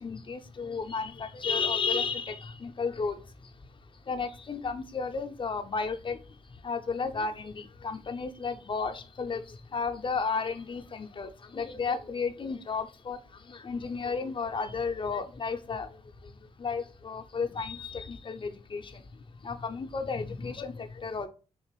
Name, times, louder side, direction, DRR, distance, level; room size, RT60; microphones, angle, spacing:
voice 1, 0.0-3.2 4.1-6.2 6.6-9.4 9.7-13.2 13.5-15.9 16.6-18.8 19.4-21.3, left 5 dB, 35° left, 0.6 m, -33 dB
3.8 x 2.9 x 3.1 m
hypercardioid pair, 45°, 14 cm